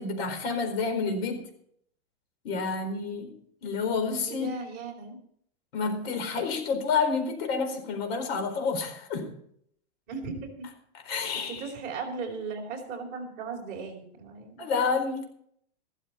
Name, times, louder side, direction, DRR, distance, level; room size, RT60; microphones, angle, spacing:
voice 1, 0.0-1.4 2.4-3.3 3.6-4.5 5.7-9.3 11.1-11.6 14.6-15.2, left 4 dB, 60° left, 6 dB, 4.3 m, -29 dB
voice 2, 4.3-5.2 10.1-10.7 11.3-14.6, right 4 dB, 25° right, -1 dB, 4.2 m, -37 dB
15.0 x 13.5 x 4.3 m, 0.66 s
supercardioid pair, 165°, 35 cm